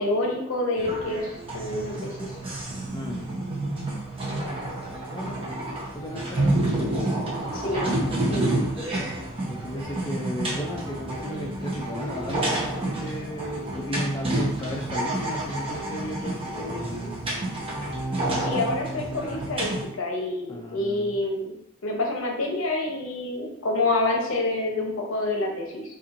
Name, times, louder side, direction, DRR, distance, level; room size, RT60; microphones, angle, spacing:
voice 1, 0.0-2.3 7.5-7.9 8.3-8.6 18.4-19.7 20.0-21.5 21.8-25.8, left 2 dB, 85° left, 1 dB, 0.7 m, -27 dB
sound 1, 0.8-19.9, right 1 dB, 25° right, 0.8 m, -29 dB
voice 2, 2.9-3.3 5.1-5.4 5.9-6.5 9.4-17.1 20.5-21.2, equal, 20° left, -1 dB, 0.4 m, -35 dB
4.3 x 2.6 x 2.5 m, 0.78 s
head